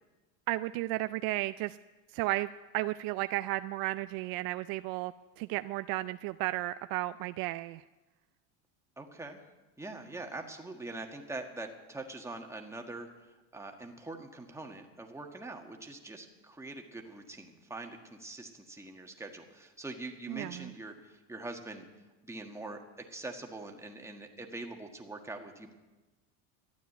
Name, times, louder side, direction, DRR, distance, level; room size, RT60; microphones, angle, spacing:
voice 1, 0.5-1.8 2.1-7.8 20.3-20.7, right 17 dB, 55° right, 12 dB, 0.5 m, -34 dB
voice 2, 9.0-9.4 9.8-21.9 22.2-25.7, right 2 dB, 5° right, 2 dB, 1.6 m, -43 dB
12.5 x 9.3 x 9.1 m, 1.2 s
supercardioid pair, 125°, 42 cm